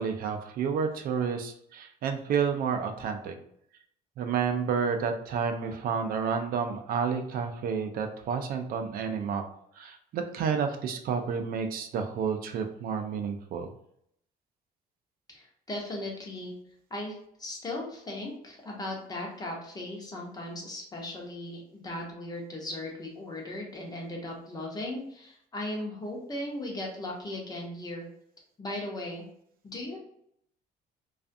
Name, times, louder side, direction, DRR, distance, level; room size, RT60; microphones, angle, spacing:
voice 1, 0.0-3.3 4.2-9.4 9.8-13.7, right 6 dB, 60° right, 5 dB, 0.4 m, -30 dB
voice 2, 15.3-16.6 16.9-28.1 28.6-29.3 29.6-30.0, left 1 dB, 25° left, -1 dB, 0.8 m, -37 dB
2.4 x 2.4 x 2.5 m, 0.69 s
cardioid pair, 110°, 17 cm